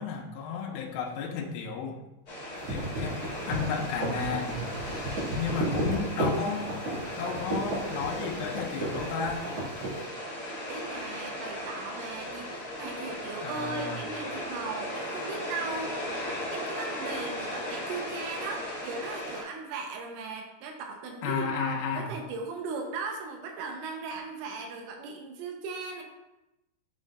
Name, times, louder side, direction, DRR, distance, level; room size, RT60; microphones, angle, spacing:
voice 1, 0.0-2.0 2.7-4.7 5.4-6.7 7.2-9.5 13.4-14.0 21.2-22.1, left 5 dB, 85° left, 0 dB, 3.2 m, -33 dB
sound 1, 2.3-19.4, left 1 dB, 30° left, 1.8 m, -37 dB
sound 2, 2.5-10.0, right 2 dB, 50° right, 2.0 m, -33 dB
voice 2, 10.7-16.0 16.5-26.0, right 4 dB, 85° right, 1 dB, 3.4 m, -38 dB
10.0 x 5.3 x 2.4 m, 0.95 s
omnidirectional pair, 5.6 m